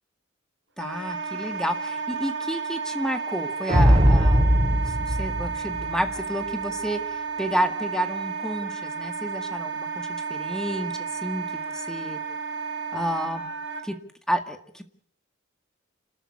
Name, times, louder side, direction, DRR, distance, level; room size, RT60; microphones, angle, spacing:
voice 1, 0.8-12.2 12.9-13.5 13.8-14.0 14.3-14.8, equal, 5° left, 7 dB, 1.8 m, -31 dB
Wind instrument woodwind instrument, 0.8-13.8, right 5 dB, 70° right, 5.4 m, -32 dB
sound 1, 3.7-6.2, equal, 30° right, 2.8 m, -19 dB
29.5 x 13.0 x 8.5 m, 0.62 s
head